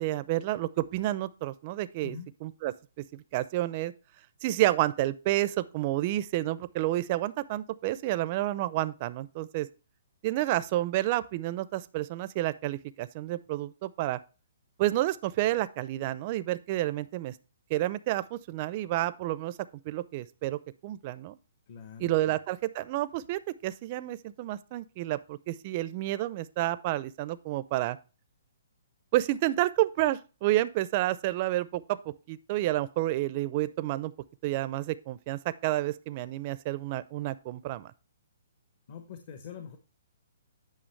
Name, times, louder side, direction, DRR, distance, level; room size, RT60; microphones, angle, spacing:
voice 1, 0.0-2.2 2.4-2.7 3.1-3.9 4.4-9.7 10.2-14.2 14.8-17.4 17.7-19.6 19.9-21.4 22.0-28.0 29.1-34.1 34.4-37.9, right 15 dB, 30° right, 0.4 m, -30 dB
voice 2, 21.7-22.4 38.9-39.8, left 7 dB, 40° left, 0.9 m, -44 dB
8.8 x 5.8 x 3.2 m
hypercardioid pair, 160°, 0 cm